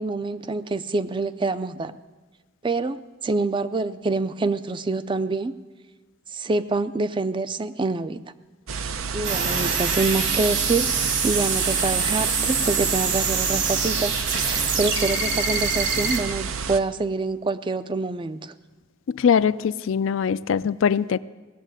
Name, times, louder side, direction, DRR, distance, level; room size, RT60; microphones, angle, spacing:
voice 1, 0.0-1.9 2.6-3.0 3.2-5.5 6.3-8.2 9.1-18.5, right 3 dB, 25° right, 13 dB, 0.4 m, -26 dB
sound 1, 8.7-16.8, right 5 dB, 90° right, 0.7 m, -31 dB
sound 2, 9.2-16.2, right 5 dB, 60° right, 1.9 m, -25 dB
voice 2, 19.1-21.2, left 7 dB, 70° left, 16 dB, 0.4 m, -22 dB
17.5 x 7.3 x 8.9 m, 1.3 s
head